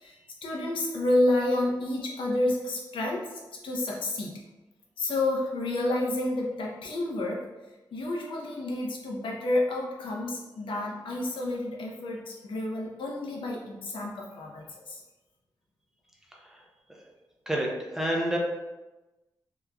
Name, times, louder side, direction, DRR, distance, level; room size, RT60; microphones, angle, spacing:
voice 1, 0.4-4.3 5.0-7.5 7.9-15.0, left 1 dB, 85° left, -2 dB, 0.7 m, -29 dB
voice 2, 17.5-18.4, right 1 dB, 5° right, -2 dB, 0.6 m, -28 dB
3.6 x 2.9 x 2.3 m, 1.1 s
wide cardioid pair, 125°, 8 cm